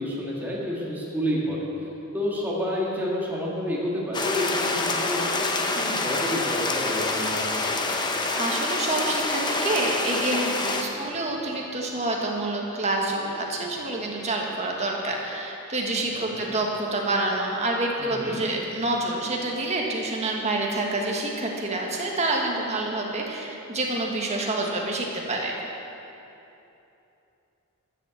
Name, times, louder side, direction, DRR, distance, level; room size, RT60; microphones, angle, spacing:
voice 1, 0.0-1.6 2.1-5.5 5.8-7.7 16.1-16.5 18.0-18.4, equal, 10° right, -6 dB, 2.0 m, -29 dB
Weather - Rain, 4.1-10.8, left 2 dB, 20° left, 0.8 m, -27 dB
voice 2, 8.4-25.6, right 2 dB, 30° right, -1 dB, 1.6 m, -27 dB
13.5 x 7.1 x 7.2 m, 2.9 s
head